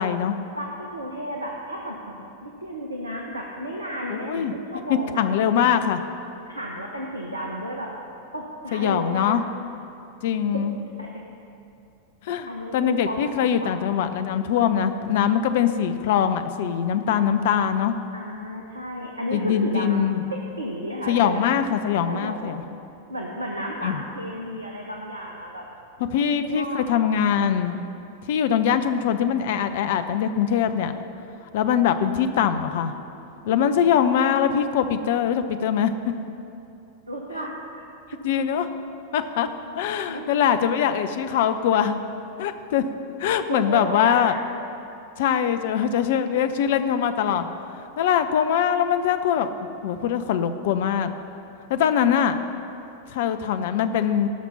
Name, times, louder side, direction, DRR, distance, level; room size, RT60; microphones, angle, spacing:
voice 1, 0.0-0.4 4.1-4.5 5.2-6.0 8.7-9.4 10.2-10.8 12.2-12.5 12.7-18.0 19.3-20.2 21.1-22.6 23.8-24.0 26.1-27.7 28.3-31.0 31.5-32.9 33.5-35.9 38.2-38.7 39.1-39.5 39.8-42.0 42.4-42.8 43.2-44.3 45.2-47.5 48.0-49.5 49.8-51.1 51.7-52.4 53.1-54.3, left 8 dB, 55° left, 10 dB, 0.7 m, -22 dB
voice 2, 0.6-5.2 6.5-7.9 8.3-9.4 10.5-10.6 11.0-11.1 12.5-13.2 13.6-14.0 18.1-20.2 20.6-21.4 22.1-22.6 23.1-25.6 26.3-27.0 33.4-33.9 37.1-37.8 38.1-38.2 40.1-40.3 43.5-44.5, equal, 85° right, -1 dB, 1.0 m, -33 dB
17.5 x 6.0 x 5.5 m, 2.7 s
figure-of-eight pair, 90°, 0 cm